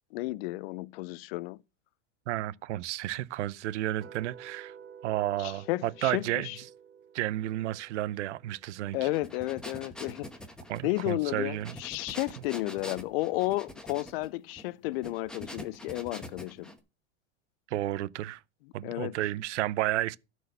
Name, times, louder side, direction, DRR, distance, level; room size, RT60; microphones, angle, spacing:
voice 1, 0.1-1.6 5.4-6.6 8.9-10.3 10.8-16.7 18.8-19.1, left 19 dB, 55° left, 0.6 m, -32 dB
voice 2, 2.3-4.7 5.0-6.5 7.1-9.1 10.7-11.8 17.7-18.4 18.7-20.2, right 15 dB, 75° right, 0.7 m, -32 dB
sound 1, 4.0-10.1, right 8 dB, 30° right, 1.6 m, -52 dB
sound 2, 9.0-16.8, equal, ahead, 1.1 m, -45 dB
12.0 x 4.7 x 6.5 m
supercardioid pair, 145°, 35 cm